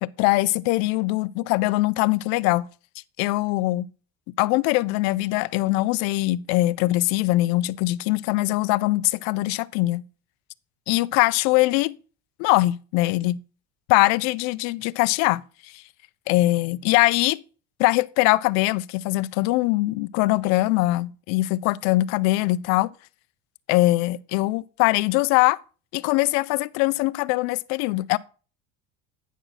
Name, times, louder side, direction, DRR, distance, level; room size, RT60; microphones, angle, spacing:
voice 1, 0.0-2.7 3.2-3.8 4.4-10.0 10.9-12.0 12.4-13.4 13.9-15.8 16.3-17.4 17.8-22.9 23.7-25.6 25.9-28.2, left 19 dB, 70° left, 0.4 m, -22 dB
9.1 x 6.2 x 3.9 m
cardioid pair, 150°, 29 cm